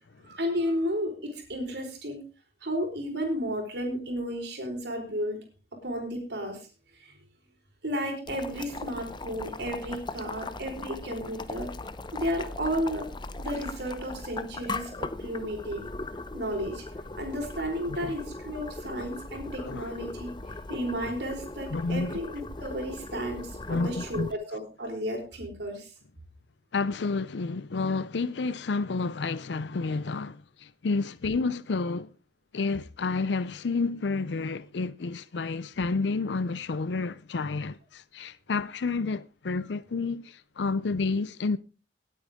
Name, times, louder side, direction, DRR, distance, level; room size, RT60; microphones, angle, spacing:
voice 1, 0.2-2.2 2.6-5.4 5.8-6.6 7.0-7.1 7.8-11.7 12.1-13.0 13.4-14.9 15.2-15.8 16.3-16.8 17.2-25.9, equal, 70° right, 4.6 m, -33 dB
Boiling, 8.3-24.3, left 2 dB, 25° left, 0.7 m, -39 dB
voice 2, 19.6-19.9 21.7-22.2 23.7-24.3 26.7-32.1 32.5-41.6, left 4 dB, 80° left, 0.5 m, -30 dB
19.0 x 8.7 x 3.6 m
head